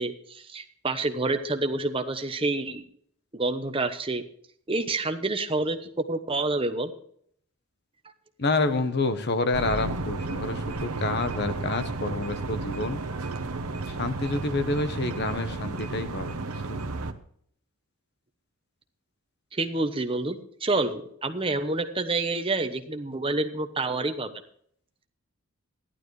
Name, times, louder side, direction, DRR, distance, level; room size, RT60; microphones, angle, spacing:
voice 1, 0.0-2.8 3.3-4.2 4.7-6.9 19.5-24.3, right 2 dB, 25° right, 7 dB, 1.0 m, -28 dB
voice 2, 8.4-13.0 13.9-16.4 16.7-16.9, left 3 dB, 50° left, 9 dB, 1.0 m, -28 dB
sound 1, 9.5-17.1, right 3 dB, 85° right, 1.0 m, -33 dB
14.5 x 11.5 x 3.2 m, 0.64 s
head